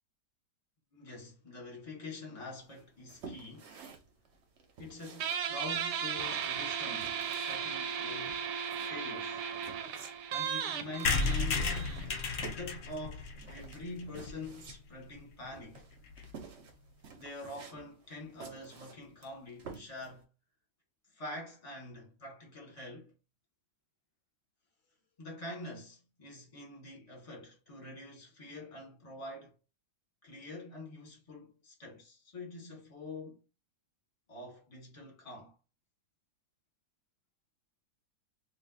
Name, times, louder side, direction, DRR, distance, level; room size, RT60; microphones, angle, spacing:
voice 1, 0.9-3.7 4.8-7.2 7.4-8.4 8.8-9.4 10.3-11.8 12.4-15.9 17.1-20.3 21.1-23.1 25.2-29.5 30.2-33.4 34.3-35.5, left 2 dB, 25° left, 1.1 m, -45 dB
sound 1, 2.7-20.2, right 5 dB, 60° right, 0.8 m, -52 dB
Guitar, 5.2-12.4, right 7 dB, 85° right, 1.2 m, -36 dB
sound 2, 11.0-14.7 15.2-15.3 15.4-15.5 15.8-15.9 16.1-16.3, left 4 dB, 70° left, 0.7 m, -33 dB
2.6 x 2.5 x 3.8 m
omnidirectional pair, 1.7 m